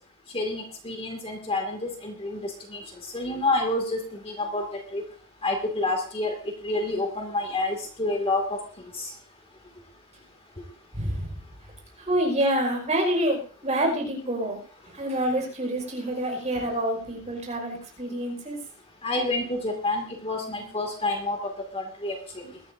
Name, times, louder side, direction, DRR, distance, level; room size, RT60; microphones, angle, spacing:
voice 1, 0.3-2.8 3.1-4.0 4.3-4.7 4.9-5.0 5.4-6.4 6.6-8.6 9.0-9.1 19.0-21.4 21.7-22.2 22.4-22.5, left 2 dB, 25° left, 3 dB, 2.4 m, -28 dB
voice 2, 10.9-11.3 12.1-14.6 14.9-18.6, right 1 dB, 30° right, 0 dB, 5.3 m, -27 dB
22.0 x 13.0 x 2.7 m, 0.43 s
head